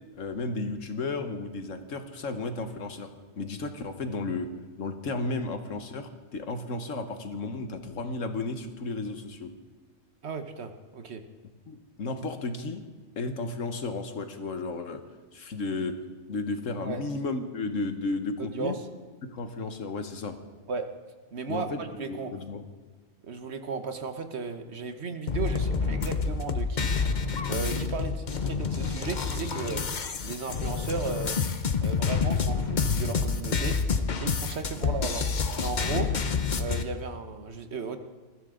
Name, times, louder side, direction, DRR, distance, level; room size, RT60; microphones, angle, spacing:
voice 1, 0.2-3.1 3.4-4.5 4.8-9.5 11.7-12.8 13.2-15.0 15.3-16.0 16.3-18.7 19.3-20.4 21.5-22.6 35.9-36.1, left 3 dB, 75° left, 8 dB, 1.6 m, -33 dB
voice 2, 10.2-11.2 16.8-17.0 18.4-18.9 20.7-20.9 21.3-22.3 23.2-26.9 27.5-29.8 30.2-31.4 31.8-33.8 34.2-35.2 35.6-36.1 36.6-38.0, right 4 dB, 55° right, 8 dB, 1.3 m, -35 dB
sound 1, 25.3-36.8, left 5 dB, 40° left, 0.9 m, -28 dB
21.0 x 14.0 x 3.8 m, 1.4 s
omnidirectional pair, 1.3 m